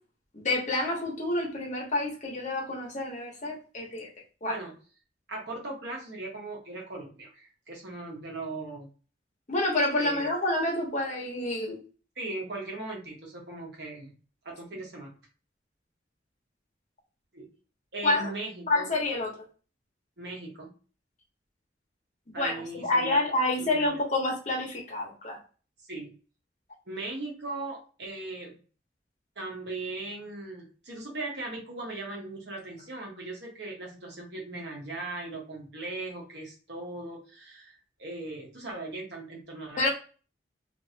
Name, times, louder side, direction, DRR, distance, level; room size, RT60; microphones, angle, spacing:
voice 1, 0.3-4.1 4.4-4.6 9.5-11.8 18.0-18.3 18.7-19.3 22.4-25.4 39.8-39.9, left 2 dB, 40° left, -2 dB, 1.0 m, -28 dB
voice 2, 5.3-8.9 10.0-10.3 12.2-14.1 14.4-15.1 17.3-17.5 17.9-18.9 20.2-20.7 22.3-23.2 23.6-23.9 25.9-26.1 26.9-28.6 29.4-39.9, right 2 dB, 65° right, -1 dB, 1.1 m, -38 dB
3.0 x 2.6 x 2.8 m, 0.38 s
head